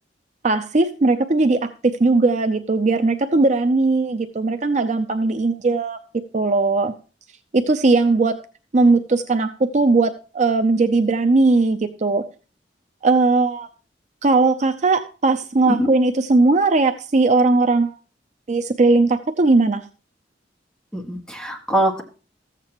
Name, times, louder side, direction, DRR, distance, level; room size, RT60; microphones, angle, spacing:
voice 1, 0.4-6.0 6.3-6.9 7.5-8.4 8.7-12.3 13.0-13.7 14.2-18.0 18.5-19.8, right 3 dB, 40° right, 8 dB, 0.5 m, -18 dB
voice 2, 20.9-22.0, right 1 dB, 5° left, 0 dB, 1.8 m, -23 dB
14.0 x 8.2 x 2.9 m, 0.35 s
head